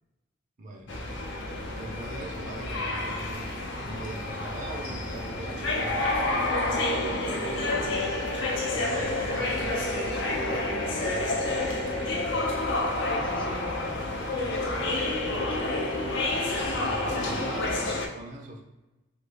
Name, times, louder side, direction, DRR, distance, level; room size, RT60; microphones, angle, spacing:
voice 1, 0.6-0.9 1.8-7.4 8.7-10.5 10.9-11.7 16.8-18.6, right 2 dB, 40° right, 1 dB, 0.5 m, -42 dB
sound 1, 0.9-18.1, left 2 dB, 60° left, 0.6 m, -29 dB
voice 2, 13.0-15.7, equal, 5° left, -2 dB, 0.6 m, -43 dB
3.2 x 2.3 x 3.3 m, 1.0 s
head